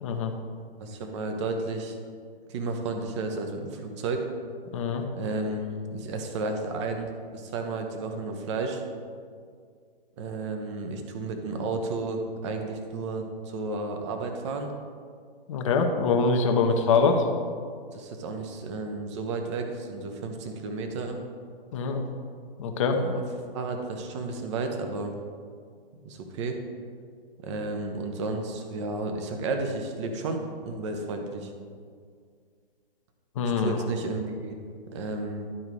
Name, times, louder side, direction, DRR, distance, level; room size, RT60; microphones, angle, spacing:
voice 1, 0.0-0.3 4.7-5.0 15.5-17.2 21.7-22.0 22.6-23.0 33.4-33.8, left 4 dB, 35° left, 4 dB, 0.8 m, -24 dB
voice 2, 0.8-2.0 2.5-4.2 5.1-8.8 10.2-14.7 16.6-17.2 17.9-21.2 22.9-23.2 23.5-25.1 26.0-26.6 27.4-31.5 33.4-34.6 34.9-35.5, right 3 dB, 30° right, 4 dB, 0.9 m, -32 dB
11.0 x 4.7 x 4.7 m, 2.1 s
figure-of-eight pair, 125°, 29 cm